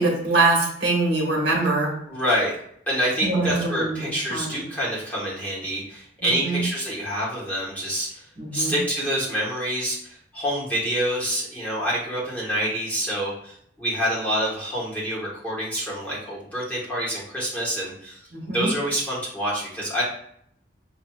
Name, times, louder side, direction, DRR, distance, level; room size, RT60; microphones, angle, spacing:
voice 1, 0.0-2.0 3.2-4.6 6.2-6.6 8.4-8.8 18.3-18.7, right 2 dB, 55° right, -1 dB, 1.2 m, -23 dB
voice 2, 2.1-2.6 2.9-8.2 8.5-20.0, equal, 10° left, -7 dB, 1.3 m, -27 dB
5.8 x 2.7 x 2.3 m, 0.68 s
head